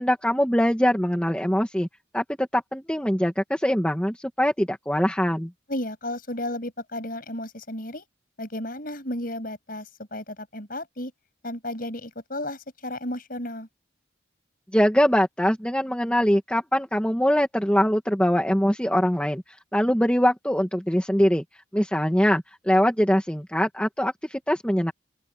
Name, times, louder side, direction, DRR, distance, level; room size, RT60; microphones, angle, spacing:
voice 1, 0.0-1.9 2.1-5.5 14.7-19.4 19.7-21.4 21.7-24.9, equal, 5° left, 1.8 m, -22 dB
voice 2, 5.7-8.0 8.4-11.1 11.4-13.7, left 1 dB, 45° left, 7.5 m, -33 dB
open air
head